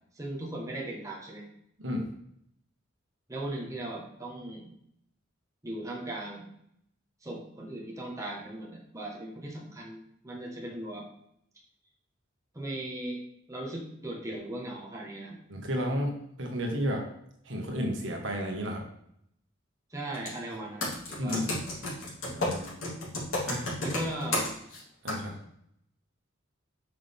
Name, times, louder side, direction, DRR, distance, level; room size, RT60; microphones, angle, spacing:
voice 1, 0.1-1.4 3.3-4.7 5.6-6.5 7.2-11.1 12.5-13.2 13.5-15.4 19.9-21.4 23.8-24.5, right 1 dB, 15° right, -3 dB, 1.4 m, -38 dB
voice 2, 1.8-2.1 15.5-17.0 17.4-18.8 21.2-21.5 22.2-22.7 23.5-23.7 25.0-25.3, equal, 65° right, 1 dB, 1.6 m, -32 dB
Computer keyboard, 20.1-20.4 20.8-24.8 25.1-25.2, left 2 dB, 85° left, 3.3 m, -31 dB
8.6 x 5.9 x 3.6 m, 0.72 s
head